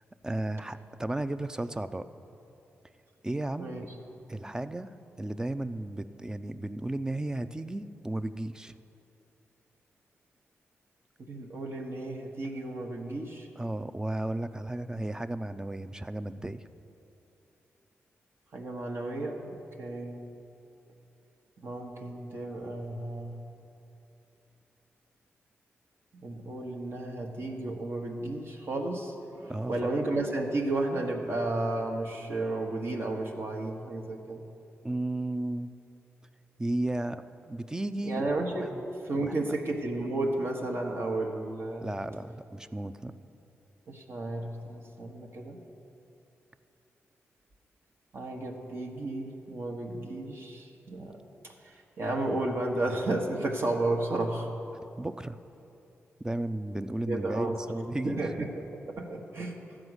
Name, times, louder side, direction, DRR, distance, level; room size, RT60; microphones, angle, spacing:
voice 1, 0.2-2.1 3.2-3.8 4.3-8.8 13.6-16.7 29.5-29.7 34.8-35.7 36.6-38.2 38.6-38.8 39.2-39.5 41.8-43.1 55.0-55.4 56.2-58.2, right 1 dB, 15° right, 12 dB, 0.4 m, -34 dB
voice 2, 3.6-3.9 11.2-13.5 18.5-20.3 21.6-23.4 26.1-34.4 38.0-38.7 39.0-41.9 43.9-45.6 48.1-51.2 51.6-54.5 57.1-57.6 58.0-58.6 59.0-59.6, right 2 dB, 55° right, 0 dB, 1.1 m, -33 dB
13.0 x 5.0 x 8.0 m, 2.8 s
cardioid pair, 80°, 5 cm